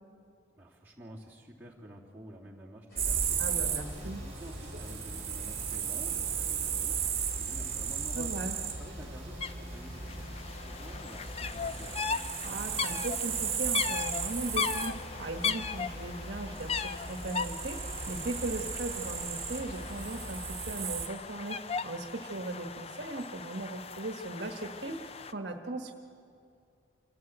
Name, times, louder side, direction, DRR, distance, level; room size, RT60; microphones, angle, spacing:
voice 1, 0.6-3.7 4.0-8.4 8.8-12.2, equal, 10° right, -5 dB, 2.7 m, -49 dB
sound 1, 2.9-20.3, left 1 dB, 55° left, 6.0 m, -51 dB
sound 2, 3.0-21.1, right 7 dB, 30° right, 1.9 m, -36 dB
voice 2, 3.4-4.2 8.1-8.6 12.4-20.4 20.7-25.0 25.3-25.9, right 2 dB, 60° right, 4 dB, 1.3 m, -38 dB
sound 3, 9.4-9.5 9.8-25.3, left 6 dB, 30° left, 0.5 m, -38 dB
26.5 x 14.0 x 7.9 m, 2.4 s
head